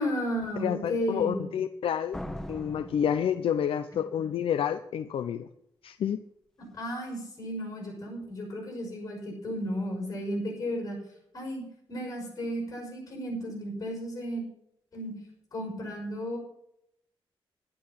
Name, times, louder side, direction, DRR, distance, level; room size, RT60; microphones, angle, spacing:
voice 1, 0.0-1.4 6.7-11.0 11.3-11.6 11.9-14.4 14.9-15.1 15.5-16.4, equal, 35° left, 1 dB, 6.1 m, -33 dB
voice 2, 0.6-2.2 2.5-5.5 5.8-6.2, left 8 dB, 75° left, 9 dB, 0.6 m, -29 dB
Slam, 2.1-4.0, left 1 dB, 5° left, 1.0 m, -40 dB
11.5 x 11.0 x 5.8 m, 0.74 s
wide cardioid pair, 175°, 10 cm